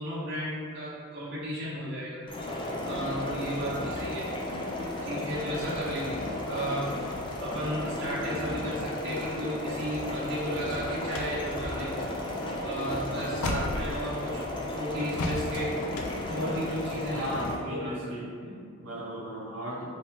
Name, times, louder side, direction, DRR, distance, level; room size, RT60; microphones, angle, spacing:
voice 1, 0.0-2.2 2.8-4.3 5.0-6.9 7.4-11.9 12.6-15.7 16.3-17.2 17.7-18.0 18.4-18.6, equal, 50° right, -9 dB, 0.8 m, -34 dB
sound 1, 2.3-17.5, left 1 dB, 25° left, 0.4 m, -34 dB
sound 2, 10.7-14.5 15.2-17.2, left 2 dB, 90° left, 0.4 m, -36 dB
voice 2, 17.1-18.3 18.8-19.8, equal, 80° right, -6 dB, 1.0 m, -36 dB
3.3 x 2.8 x 3.2 m, 2.3 s
head